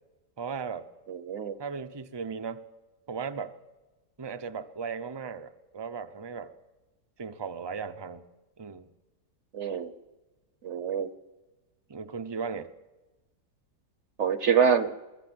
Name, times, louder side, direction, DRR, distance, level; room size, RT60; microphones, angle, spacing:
voice 1, 0.4-0.9 1.6-2.6 3.1-3.5 4.2-6.5 7.2-8.2 8.6-8.9 11.9-12.7, right 5 dB, 30° right, 9 dB, 0.4 m, -36 dB
voice 2, 1.1-1.5 9.5-9.9 10.6-11.1 14.2-14.9, right 7 dB, 50° right, 12 dB, 1.0 m, -25 dB
23.0 x 14.5 x 7.9 m, 1.1 s
omnidirectional pair, 1.8 m